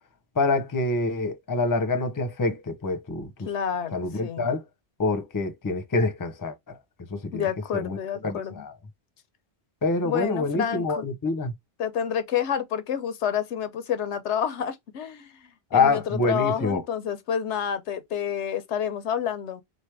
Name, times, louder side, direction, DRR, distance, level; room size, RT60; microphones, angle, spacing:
voice 1, 0.4-3.5 3.9-4.6 5.0-6.5 7.1-7.5 7.7-8.0 8.2-8.7 9.8-11.5 15.7-16.8, left 3 dB, 20° left, 0.6 m, -26 dB
voice 2, 3.5-4.5 7.3-8.6 10.0-11.1 11.8-15.3 15.7-19.6, left 8 dB, 85° left, 1.0 m, -29 dB
4.0 x 3.3 x 3.3 m
omnidirectional pair, 1.1 m